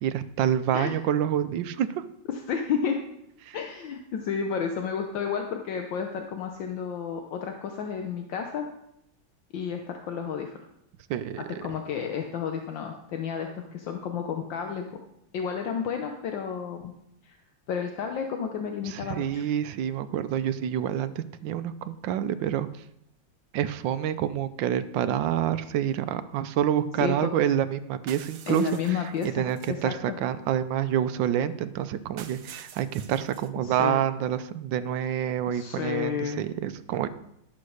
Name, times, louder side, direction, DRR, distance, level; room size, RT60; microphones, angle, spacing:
voice 1, 0.0-2.0 3.4-3.6 11.1-11.7 18.8-22.7 23.5-37.1, right 10 dB, 75° right, 12 dB, 1.3 m, -28 dB
voice 2, 2.3-3.0 3.5-8.7 9.5-10.5 11.4-15.0 15.3-16.9 17.2-17.4 17.7-19.5 27.0-27.3 28.5-30.2 33.6-34.0 35.5-36.4, left 7 dB, 75° left, 4 dB, 1.6 m, -31 dB
sound 1, 28.1-29.8 32.2-33.5, right 8 dB, 60° right, 1.0 m, -47 dB
12.0 x 6.3 x 6.4 m, 0.79 s
omnidirectional pair, 2.1 m